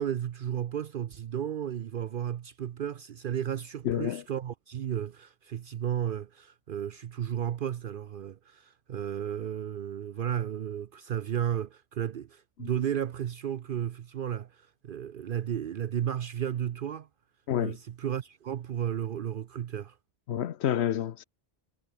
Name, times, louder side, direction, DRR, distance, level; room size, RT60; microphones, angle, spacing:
voice 1, 0.0-17.1 17.6-20.0, right 9 dB, 60° right, 0.7 m, -33 dB
voice 2, 3.8-4.2 12.6-12.7 17.5-17.8 20.3-21.2, left 10 dB, 85° left, 1.0 m, -29 dB
omnidirectional pair, 1.1 m